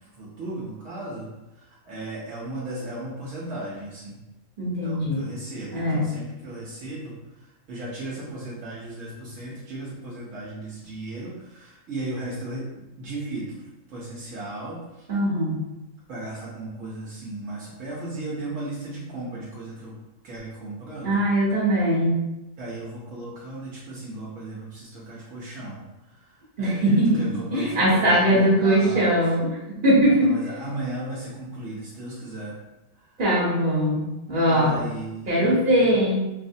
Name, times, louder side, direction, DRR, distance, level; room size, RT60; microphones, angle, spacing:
voice 1, 0.2-1.3 1.6-4.2 4.8-7.1 7.7-12.7 13.0-13.5 13.9-14.8 16.1-19.9 20.2-21.2 22.6-25.8 26.6-29.1 30.1-32.6 34.5-36.0, right 2 dB, 70° right, -6 dB, 1.1 m, -36 dB
voice 2, 4.6-5.2 5.7-6.1 15.1-15.7 21.0-22.2 26.6-29.6 29.8-30.3 33.2-34.8 35.3-36.2, right 1 dB, 40° right, -6 dB, 1.3 m, -21 dB
4.7 x 2.0 x 2.7 m, 0.98 s
omnidirectional pair, 1.4 m